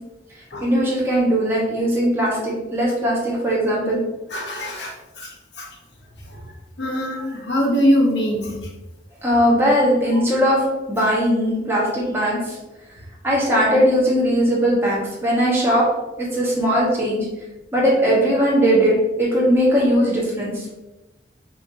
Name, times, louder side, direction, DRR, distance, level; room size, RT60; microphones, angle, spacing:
voice 1, 0.6-4.0 9.2-10.6 10.9-12.6 13.2-15.8 16.3-17.2 17.7-20.6, equal, 15° right, -6 dB, 1.4 m, -19 dB
voice 2, 4.3-5.7 6.2-6.4 6.8-8.7 10.1-10.2, equal, 75° left, 0 dB, 1.0 m, -23 dB
5.8 x 2.9 x 2.7 m, 1.0 s
head